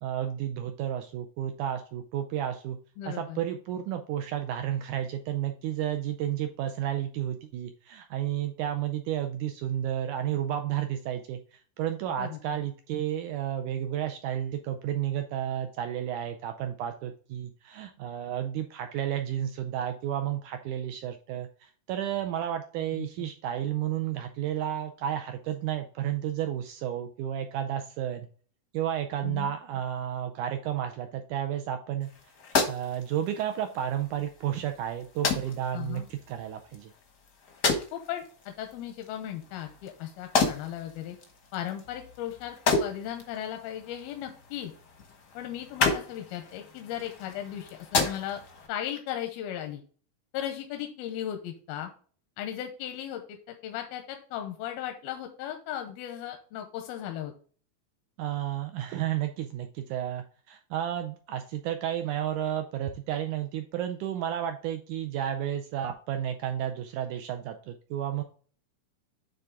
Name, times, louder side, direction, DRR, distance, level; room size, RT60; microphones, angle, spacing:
voice 1, 0.0-2.8 3.1-28.3 28.7-32.1 32.7-36.9 58.2-68.2, right 11 dB, 85° right, 7 dB, 1.7 m, -32 dB
voice 2, 3.0-3.4 12.2-12.6 23.0-23.3 29.2-29.5 35.7-36.1 37.9-41.2 41.5-44.7 45.3-48.4 48.7-49.8 50.3-51.9 52.4-57.3, left 11 dB, 85° left, 5 dB, 2.6 m, -36 dB
sound 1, 32.0-48.7, left 4 dB, 70° left, 0.9 m, -33 dB
9.4 x 3.8 x 3.6 m, 0.42 s
omnidirectional pair, 4.3 m